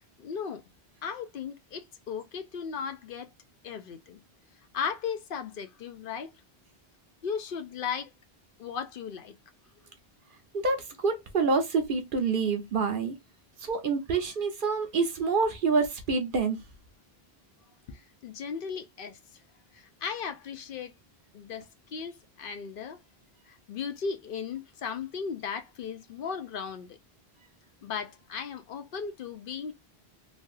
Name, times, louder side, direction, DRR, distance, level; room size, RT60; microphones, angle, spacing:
voice 1, 0.2-0.6 1.0-3.3 3.6-4.2 4.7-6.3 7.2-8.1 8.6-9.3 17.9-19.2 19.7-20.9 21.3-23.0 23.5-27.0 27.8-29.7, left 6 dB, 60° left, 0.7 m, -36 dB
voice 2, 10.5-13.1 13.6-16.6, right 4 dB, 60° right, 0.9 m, -27 dB
3.2 x 2.3 x 2.6 m
omnidirectional pair, 1.1 m